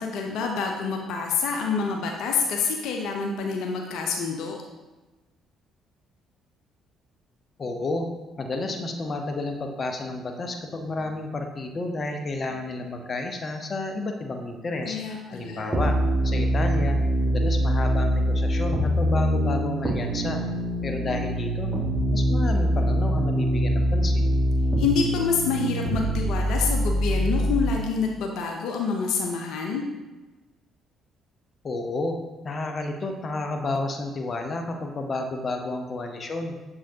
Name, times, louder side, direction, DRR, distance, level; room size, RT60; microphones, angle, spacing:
voice 1, 0.0-4.6 14.8-15.8 24.8-29.8, left 5 dB, 70° left, 1 dB, 0.7 m, -27 dB
voice 2, 7.6-8.1 8.4-15.0 15.3-16.0 16.2-17.0 17.3-20.4 20.8-21.8 22.1-24.4 31.6-32.2 32.4-36.6, left 2 dB, 40° left, 4 dB, 0.8 m, -31 dB
sound 1, 15.7-27.7, equal, 15° right, 1.6 m, -24 dB
7.2 x 4.8 x 2.8 m, 1.2 s
hypercardioid pair, 55°, 0 cm